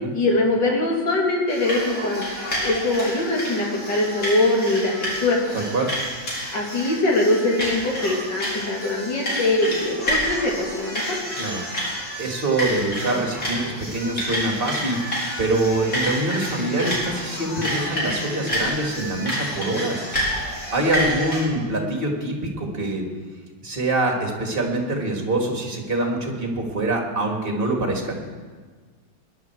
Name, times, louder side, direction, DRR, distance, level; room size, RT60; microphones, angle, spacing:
voice 1, 0.1-2.3 2.6-4.9 5.2-5.4 6.5-11.2, left 2 dB, 60° left, -2 dB, 3.3 m, -22 dB
sound 1, 1.5-21.4, equal, 45° left, 4.7 m, -29 dB
voice 2, 5.5-5.9 11.4-20.1 20.7-23.1 23.6-28.1, right 2 dB, 30° right, 1 dB, 2.3 m, -25 dB
21.0 x 11.0 x 4.7 m, 1.5 s
omnidirectional pair, 2.1 m